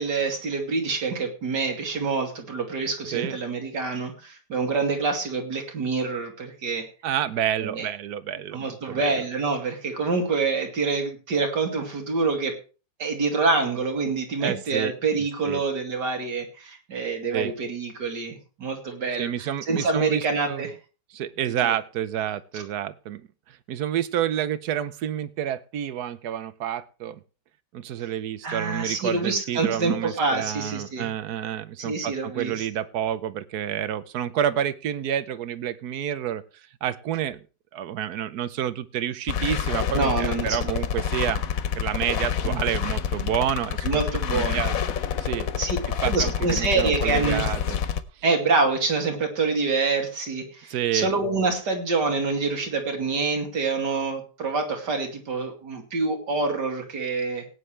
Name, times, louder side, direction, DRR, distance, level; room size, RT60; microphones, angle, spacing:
voice 1, 0.0-6.9 7.6-7.9 8.5-12.6 13.0-19.3 19.7-20.7 21.6-21.7 22.5-22.6 28.4-31.1 31.8-32.7 39.9-40.7 42.4-42.6 43.8-44.6 45.6-45.8 46.0-47.4 48.2-57.5, right 4 dB, 90° right, 3 dB, 3.0 m, -26 dB
voice 2, 7.0-9.1 14.4-15.6 17.3-17.5 19.2-20.6 21.1-27.2 27.7-36.4 36.8-37.4 37.7-41.4 41.8-44.0 44.3-44.8 45.2-45.5 46.0-47.8 50.7-51.1, right 10 dB, 70° right, 15 dB, 1.2 m, -29 dB
sound 1, 39.3-48.0, left 8 dB, 60° left, 1.2 m, -27 dB
18.0 x 9.5 x 3.3 m, 0.34 s
omnidirectional pair, 1.8 m